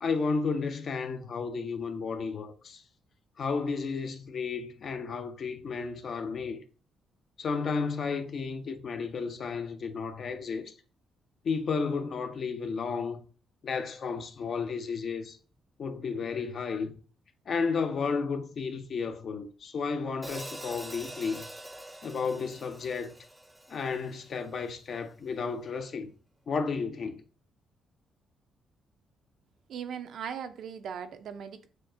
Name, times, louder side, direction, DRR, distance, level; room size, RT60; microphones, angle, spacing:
voice 1, 0.0-2.8 3.4-6.6 7.4-10.7 11.4-13.2 13.6-15.4 15.8-16.9 17.5-21.5 22.0-23.2 23.7-26.1 26.5-27.2, left 5 dB, 55° left, 0.5 m, -32 dB
Hi-hat, 20.2-24.5, right 1 dB, 10° right, 0.4 m, -45 dB
voice 2, 29.7-31.7, right 7 dB, 70° right, 0.5 m, -38 dB
6.2 x 2.1 x 2.6 m
cardioid pair, 90°, 0 cm